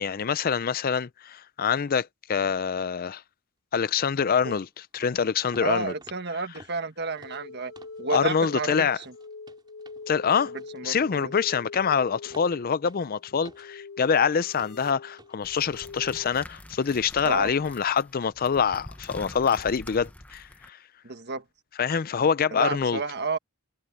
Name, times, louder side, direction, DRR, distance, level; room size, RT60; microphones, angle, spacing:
voice 1, 0.0-3.2 3.7-5.9 8.1-9.0 10.1-10.5 10.8-20.8 21.8-23.0, left 6 dB, 40° left, 0.4 m, -25 dB
sound 1, 4.5-4.7 5.0-5.2 5.5-5.7 6.0-8.0 8.3-8.6 8.9-14.2 14.6-14.8 15.2-15.4 15.8-15.9, right 2 dB, 20° right, 4.0 m, -54 dB
voice 2, 5.6-7.7 8.0-9.0 10.7-11.3 17.2-17.5 21.0-21.4 22.5-23.4, right 4 dB, 50° right, 1.5 m, -31 dB
sound 2, 7.1-16.3, left 4 dB, 75° left, 1.4 m, -43 dB
sound 3, 15.4-20.7, left 1 dB, 5° left, 0.8 m, -45 dB
head